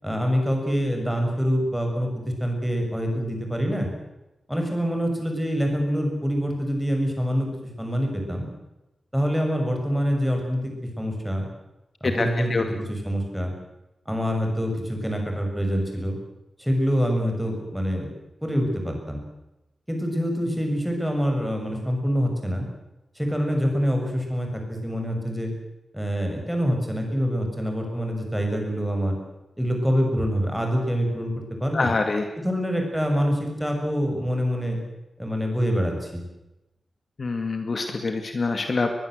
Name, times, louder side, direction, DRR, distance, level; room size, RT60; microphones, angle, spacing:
voice 1, 0.0-3.9 4.5-7.5 7.8-8.5 9.1-11.5 12.0-13.5 14.1-16.2 16.6-18.1 18.4-19.2 19.9-22.7 23.2-25.5 25.9-29.2 29.6-31.9 32.4-34.8 35.2-36.2, equal, ahead, 2 dB, 6.8 m, -25 dB
voice 2, 12.1-12.6 31.7-32.3 37.2-39.0, left 3 dB, 45° left, 5 dB, 2.2 m, -25 dB
22.0 x 21.5 x 8.0 m, 0.96 s
wide cardioid pair, 135°, 0 cm